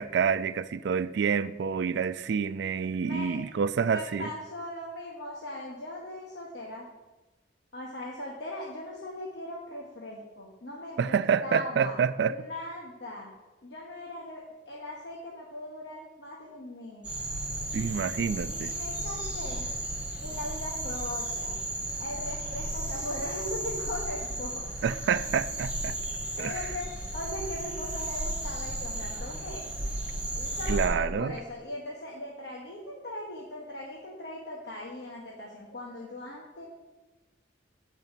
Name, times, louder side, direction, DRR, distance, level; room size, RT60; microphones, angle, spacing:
voice 1, 0.0-4.3 11.0-12.4 17.7-18.7 24.8-26.0 26.4-26.5 30.7-31.3, right 6 dB, 65° right, 0.3 m, -28 dB
voice 2, 3.0-3.4 3.9-6.9 7.7-11.9 12.3-13.3 13.6-17.1 18.5-19.6 20.2-21.6 22.0-24.7 26.4-29.6 30.3-36.7, left 1 dB, 65° left, 1.4 m, -39 dB
sound 1, 17.0-30.9, right 1 dB, 5° right, 2.4 m, -34 dB
7.9 x 5.3 x 7.4 m
head